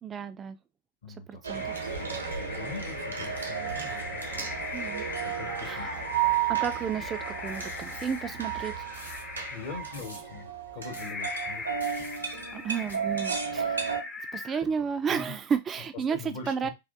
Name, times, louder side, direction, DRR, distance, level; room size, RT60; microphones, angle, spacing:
voice 1, 0.0-0.6 1.3-1.7 4.7-5.1 5.6-5.9 6.5-8.9 12.5-13.9 14.3-16.7, right 6 dB, 25° right, 0.3 m, -32 dB
voice 2, 1.0-4.3 5.2-5.9 9.5-11.6 15.1-15.3 16.1-16.7, left 5 dB, 60° left, 1.5 m, -42 dB
sound 1, 1.4-14.0, right 8 dB, 75° right, 0.6 m, -33 dB
sound 2, 1.5-15.0, left 3 dB, 25° left, 0.6 m, -40 dB
sound 3, 7.5-8.2 8.9-9.3 9.9-10.3 10.9-11.1 11.8-12.2 12.9-13.0, left 1 dB, 80° left, 0.7 m, -47 dB
3.4 x 2.2 x 2.4 m
figure-of-eight pair, 90°, 0 cm